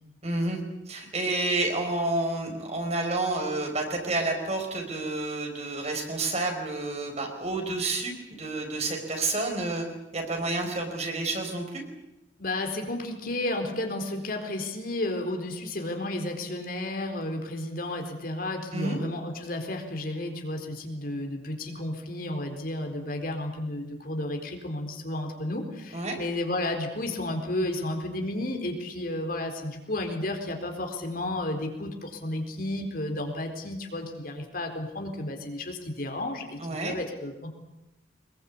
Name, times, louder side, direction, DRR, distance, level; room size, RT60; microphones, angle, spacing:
voice 1, 0.2-0.6 0.9-9.8 10.1-11.8 18.7-19.0 25.9-26.2 36.6-37.0, right 2 dB, 40° right, 3 dB, 5.0 m, -29 dB
voice 2, 12.4-36.6 36.8-37.5, left 1 dB, 55° left, 4 dB, 4.1 m, -32 dB
24.0 x 21.5 x 8.5 m, 0.92 s
head